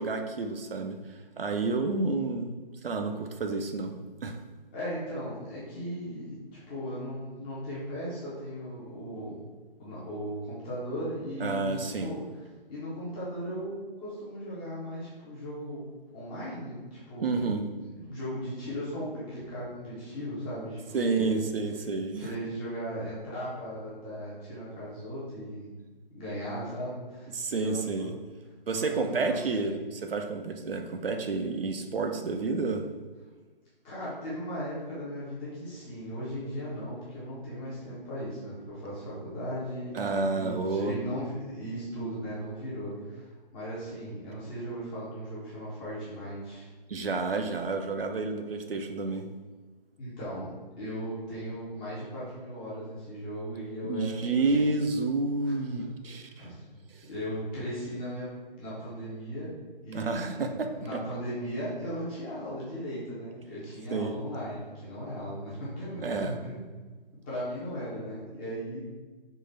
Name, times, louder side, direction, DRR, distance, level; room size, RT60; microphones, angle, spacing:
voice 1, 0.0-2.5 2.8-3.9 4.2-4.4 11.4-12.1 17.2-17.6 20.9-22.3 27.3-28.1 28.7-32.8 39.9-40.9 46.9-49.3 53.8-56.5 56.9-57.1 59.9-61.0 63.9-64.2 66.0-66.4, right 3 dB, 75° right, 5 dB, 0.5 m, -30 dB
voice 2, 4.7-6.4 6.7-9.5 9.8-12.2 12.7-17.3 17.9-21.5 22.2-25.7 26.1-28.1 28.7-29.4 33.8-40.0 40.3-46.7 50.0-54.3 54.5-54.7 55.4-55.9 56.4-56.6 57.1-59.5 59.8-60.5 60.8-66.6 67.2-68.8, equal, 10° left, -9 dB, 0.6 m, -37 dB
3.7 x 2.5 x 3.9 m, 1.3 s
figure-of-eight pair, 140°, 29 cm